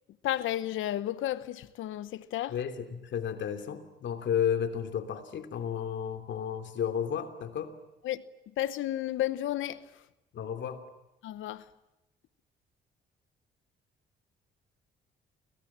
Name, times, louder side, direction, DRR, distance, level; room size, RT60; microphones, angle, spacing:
voice 1, 0.2-2.5 8.0-8.2 8.6-9.8 11.2-11.6, left 13 dB, 80° left, 1.0 m, -32 dB
voice 2, 2.5-7.7 10.3-10.8, left 8 dB, 65° left, 3.1 m, -32 dB
30.0 x 24.5 x 7.5 m
cardioid pair, 90°, 20 cm